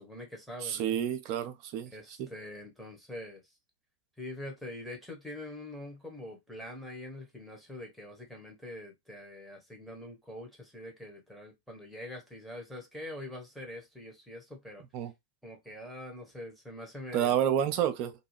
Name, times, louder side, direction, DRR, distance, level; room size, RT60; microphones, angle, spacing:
voice 1, 0.0-1.0 1.9-3.5 4.2-14.8 15.4-17.3, left 1 dB, ahead, 0.9 m, -44 dB
voice 2, 0.6-1.9 2.2-2.3 14.9-15.1 17.1-18.1, right 10 dB, 45° right, 0.4 m, -29 dB
2.5 x 2.2 x 3.1 m
figure-of-eight pair, 90°, 0 cm